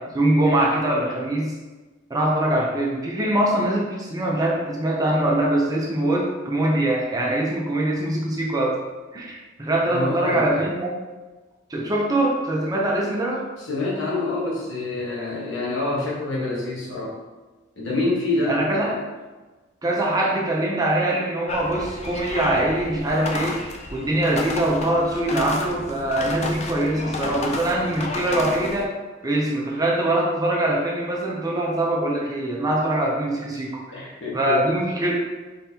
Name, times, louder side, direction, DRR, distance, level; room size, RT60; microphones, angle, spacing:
voice 1, 0.0-1.6 2.1-8.8 9.1-10.9 11.7-13.5 18.5-18.9 19.8-29.0 29.2-33.8 34.3-35.1, right 1 dB, 20° right, -2 dB, 0.6 m, -23 dB
voice 2, 9.8-10.6 13.6-17.2 17.7-19.0 33.9-34.6, left 2 dB, 70° left, -5 dB, 1.2 m, -27 dB
sound 1, 21.5-28.8, left 3 dB, 35° left, 0.4 m, -32 dB
3.9 x 3.4 x 2.8 m, 1.2 s
head